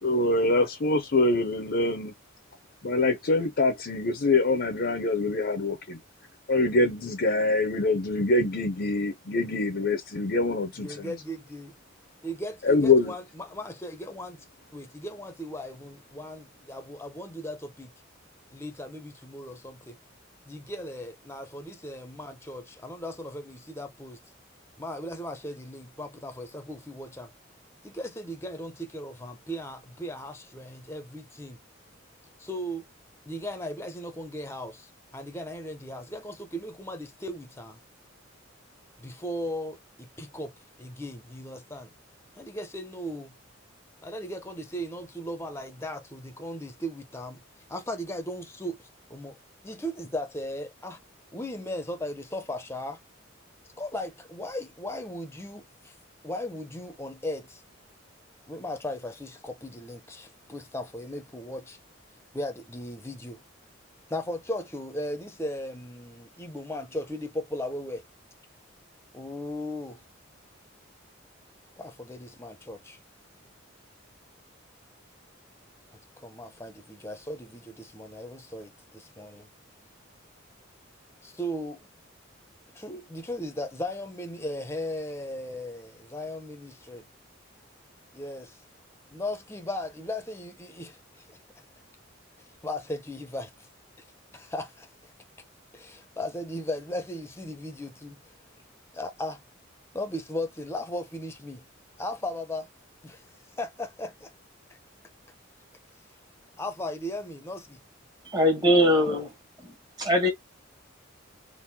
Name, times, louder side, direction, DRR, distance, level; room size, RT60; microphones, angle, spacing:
voice 1, 0.0-2.1 2.8-6.0 6.5-11.1 12.6-13.1, left 2 dB, 55° left, 0.6 m, -24 dB
voice 2, 10.8-11.7 12.2-14.4 14.7-17.9 18.5-20.0 20.5-24.2 24.8-27.3 27.8-31.6 32.4-32.9 33.3-37.8 39.0-40.5 40.8-41.9 42.4-43.3 44.0-47.4 47.7-49.4 49.6-51.0 51.3-53.0 53.8-55.9 56.2-57.6 58.5-61.8 62.3-63.4 64.1-68.0 69.1-70.0 71.8-73.0 75.9-79.5 81.2-81.9 82.7-87.0 88.1-88.6 89.1-91.4 92.6-93.5 94.3-94.9 95.7-98.2 98.9-99.4 99.9-101.6 102.0-102.7 103.0-103.2 103.6-104.3 104.7-104.8 106.6-107.8, left 1 dB, 15° left, 0.7 m, -37 dB
voice 3, 108.3-109.3 109.6-109.7 110.0-110.3, equal, 20° right, 1.2 m, -21 dB
3.7 x 2.5 x 2.7 m
head